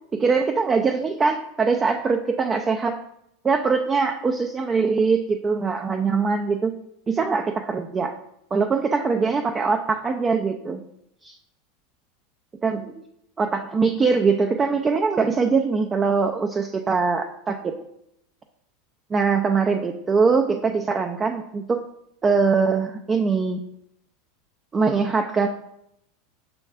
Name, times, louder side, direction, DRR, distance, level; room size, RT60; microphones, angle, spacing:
voice 1, 0.1-3.0 3.4-6.7 7.1-8.1 8.5-10.8 11.2-11.4 12.6-13.0 13.4-17.7 19.1-21.8 22.2-23.6 24.7-25.5, right 4 dB, 25° right, 4 dB, 0.3 m, -22 dB
6.0 x 2.4 x 3.3 m, 0.77 s
hypercardioid pair, 85°, 0 cm